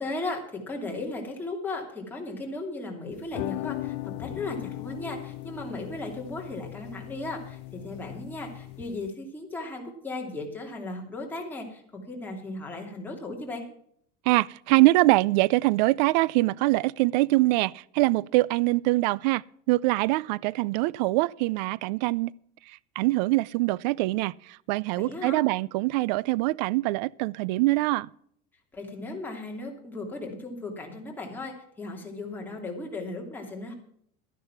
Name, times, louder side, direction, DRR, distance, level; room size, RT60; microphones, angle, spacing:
voice 1, 0.0-13.6 25.0-25.4 28.7-33.7, left 2 dB, 10° left, 2.9 m, -36 dB
sound 1, 3.1-9.1, left 19 dB, 55° left, 0.4 m, -38 dB
voice 2, 14.3-19.4 19.7-22.3 23.0-28.1, right 20 dB, 85° right, 0.4 m, -24 dB
13.0 x 10.0 x 5.9 m
cardioid pair, 155°, 21 cm